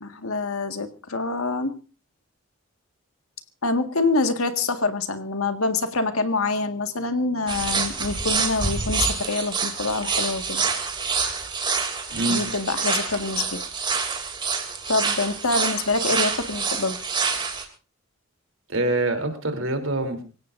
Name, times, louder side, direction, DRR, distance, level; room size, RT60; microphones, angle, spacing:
voice 1, 0.0-1.7 3.6-10.6 12.3-13.6 14.9-17.0, left 3 dB, 90° left, 8 dB, 1.8 m, -26 dB
sound 1, 7.5-17.6, right 5 dB, 20° right, 2.8 m, -27 dB
voice 2, 12.1-12.4 18.7-20.2, right 2 dB, 70° right, 6 dB, 3.4 m, -25 dB
26.0 x 17.0 x 2.6 m, 0.33 s
head